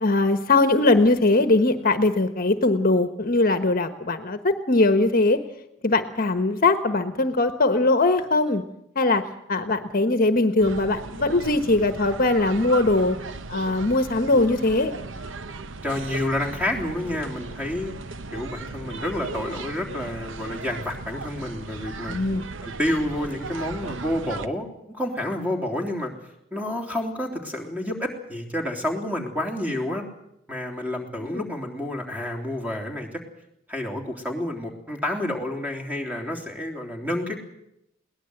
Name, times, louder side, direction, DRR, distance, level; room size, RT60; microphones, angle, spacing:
voice 1, 0.0-5.4 5.8-8.6 8.9-13.2 13.5-14.9 22.1-22.4 31.2-31.4, left 2 dB, 45° left, 9 dB, 1.2 m, -21 dB
sound 1, 10.6-24.5, right 3 dB, 70° right, 1.0 m, -37 dB
voice 2, 15.8-17.9 18.3-22.2 22.6-24.7 24.9-26.1 26.5-30.0 30.5-33.2 33.7-37.4, left 1 dB, 10° right, 3 dB, 3.4 m, -29 dB
22.0 x 18.5 x 8.0 m, 0.81 s
head